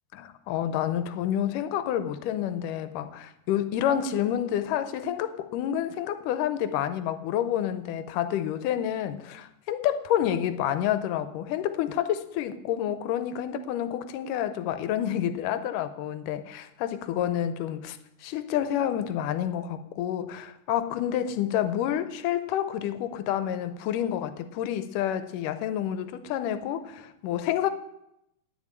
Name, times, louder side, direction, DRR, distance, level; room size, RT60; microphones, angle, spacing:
voice 1, 0.1-18.0 18.2-27.7, left 10 dB, 85° left, 2.2 m, -29 dB
9.6 x 7.5 x 8.6 m
omnidirectional pair, 3.7 m